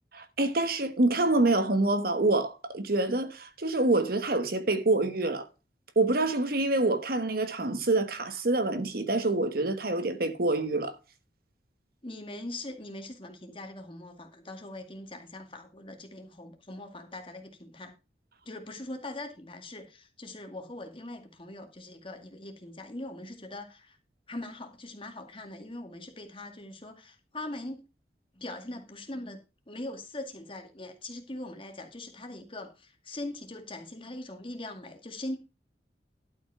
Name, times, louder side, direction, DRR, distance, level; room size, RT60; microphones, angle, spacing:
voice 1, 0.1-5.5 5.9-11.0, right 2 dB, 60° right, 1.2 m, -26 dB
voice 2, 12.0-17.9 18.5-24.0 24.3-27.8 28.3-29.4 29.7-35.4, left 1 dB, 30° left, 2.1 m, -41 dB
12.0 x 5.4 x 5.7 m
head